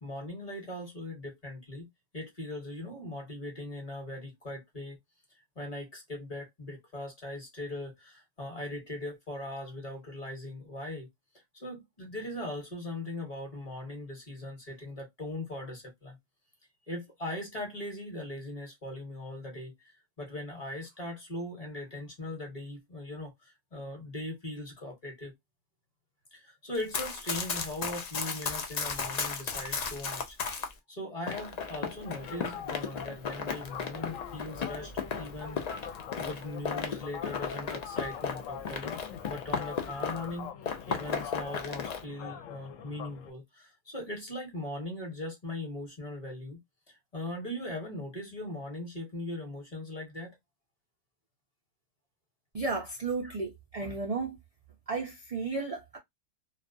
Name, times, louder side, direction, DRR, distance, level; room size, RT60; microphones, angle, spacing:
voice 1, 0.0-1.9 2.1-5.0 5.6-11.1 11.5-16.2 16.9-19.9 20.2-25.3 26.3-30.4 30.9-34.9 35.2-35.6 36.2-38.9 39.3-40.5 40.9-46.6 46.9-50.3 53.2-53.3, left 1 dB, 35° left, 0.9 m, -40 dB
Run, 26.7-30.7 31.3-40.4 40.6-42.0, left 5 dB, 65° left, 0.4 m, -35 dB
sound 1, 32.1-43.3, left 8 dB, 85° left, 1.0 m, -43 dB
voice 2, 52.5-54.4 54.9-56.0, right 4 dB, 60° right, 0.4 m, -33 dB
2.3 x 2.3 x 2.5 m
omnidirectional pair, 1.3 m